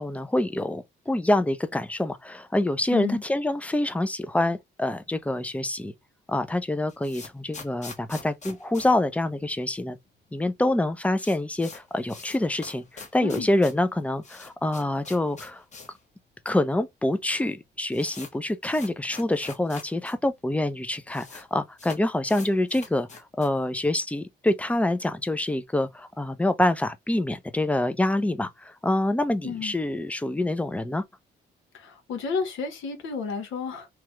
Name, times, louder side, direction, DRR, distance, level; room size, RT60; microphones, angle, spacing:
voice 1, 0.0-5.9 6.3-10.0 10.3-15.6 16.5-31.0, left 1 dB, 5° left, 0.4 m, -26 dB
voice 2, 2.9-3.2 13.2-13.5 29.4-29.7 31.7-33.9, left 5 dB, 80° left, 1.3 m, -31 dB
sound 1, 6.9-9.9 10.1-10.2 10.5-10.6 10.9-16.0 16.3-16.4 17.1-17.2 17.5-20.1 20.4-20.5 20.7-21.4 21.8-23.6, left 4 dB, 35° left, 1.1 m, -44 dB
3.1 x 2.3 x 2.9 m
cardioid pair, 90°, 20 cm